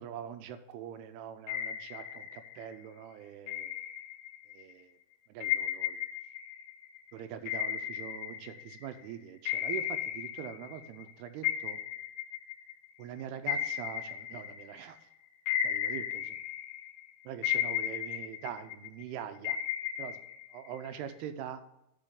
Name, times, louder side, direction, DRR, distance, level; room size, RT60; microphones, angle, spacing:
voice 1, 0.0-3.7 4.5-5.0 5.3-6.0 7.1-11.8 13.0-15.0 15.6-16.4 17.2-19.6 20.0-20.2 20.5-21.6, right 9 dB, 85° right, 9 dB, 2.7 m, -43 dB
sound 1, 1.5-2.8 3.5-4.6 5.4-9.0 9.5-11.1 11.4-15.0 15.5-17.0 17.4-19.0 19.4-21.1, left 10 dB, 75° left, 2.2 m, -35 dB
12.0 x 5.4 x 3.7 m, 0.83 s
omnidirectional pair, 4.6 m